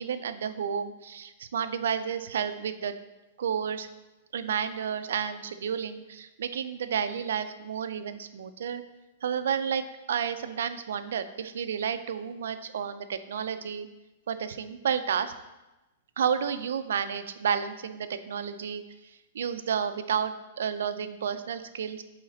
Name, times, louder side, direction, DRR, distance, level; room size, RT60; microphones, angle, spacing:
voice 1, 0.0-2.9 3.4-3.9 4.3-8.8 9.2-13.9 14.3-15.3 16.2-18.8 19.3-22.0, right 7 dB, 80° right, 10 dB, 0.4 m, -31 dB
7.8 x 3.2 x 3.9 m, 1.0 s
hypercardioid pair, 125°, 0 cm